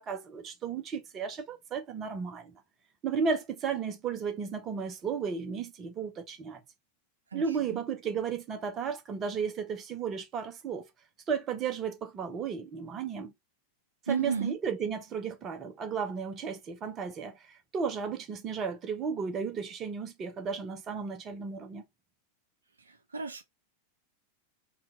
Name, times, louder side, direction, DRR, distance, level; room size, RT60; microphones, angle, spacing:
voice 1, 0.0-2.5 3.0-6.6 7.3-10.8 11.3-13.3 14.1-21.8, right 6 dB, 25° right, 0.9 m, -34 dB
voice 2, 14.1-14.6 22.9-23.4, right 5 dB, 75° right, 0.6 m, -33 dB
4.3 x 2.4 x 3.9 m
figure-of-eight pair, 90°, 0 cm